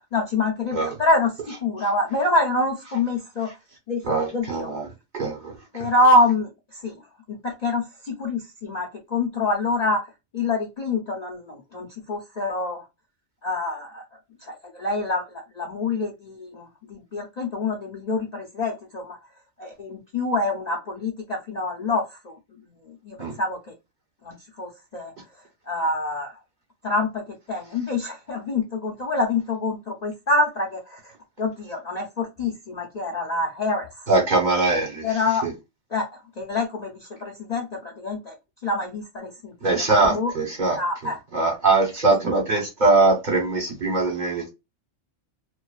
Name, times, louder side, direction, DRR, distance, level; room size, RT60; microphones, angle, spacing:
voice 1, 0.0-3.5 3.9-4.7 5.7-6.5 6.8-6.9 7.3-10.0 10.3-12.8 13.4-14.0 14.4-19.2 19.6-22.3 23.0-23.6 24.2-25.1 25.7-26.3 26.8-31.0 31.4-33.9 35.0-35.4 35.9-36.1 36.4-36.9 37.2-38.3 38.6-39.5 40.1-40.3 40.7-41.2, left 2 dB, 45° left, 0.5 m, -26 dB
voice 2, 4.0-4.9 5.1-5.5 5.8-5.9 23.2-23.3 34.1-35.1 35.4-35.5 39.6-40.8 41.3-44.5, right 3 dB, 40° right, 1.0 m, -22 dB
2.5 x 2.4 x 2.2 m
omnidirectional pair, 1.4 m